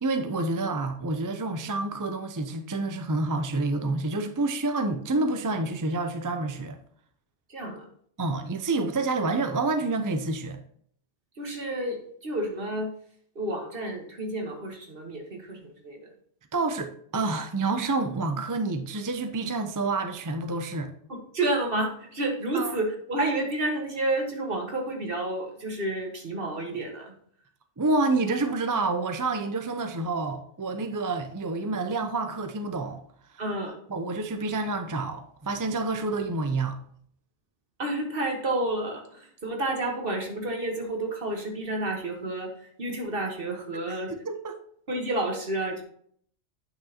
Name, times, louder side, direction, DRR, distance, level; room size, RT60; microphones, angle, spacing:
voice 1, 0.0-6.8 8.2-10.6 16.5-20.9 22.5-22.7 27.8-33.0 33.9-36.8 44.1-44.6, right 3 dB, 30° right, 0.4 m, -28 dB
voice 2, 7.5-7.9 11.4-12.9 13.3-16.1 21.1-27.1 33.4-33.7 37.8-44.1 44.9-45.8, right 1 dB, 50° right, 1.6 m, -30 dB
8.6 x 6.3 x 2.8 m
omnidirectional pair, 1.2 m